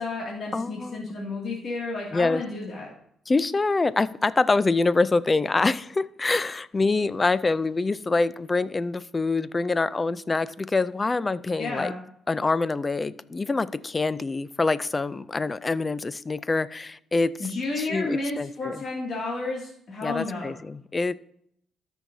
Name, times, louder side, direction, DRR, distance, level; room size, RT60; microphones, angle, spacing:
voice 1, 0.0-2.9 11.6-12.0 17.4-20.5, left 3 dB, 50° left, 2.3 m, -32 dB
voice 2, 0.5-1.1 2.1-2.4 3.3-11.9 12.3-17.5 17.8-18.8 20.0-21.2, left 3 dB, 25° left, 0.4 m, -25 dB
13.5 x 6.3 x 2.7 m
cardioid pair, 90°, 0 cm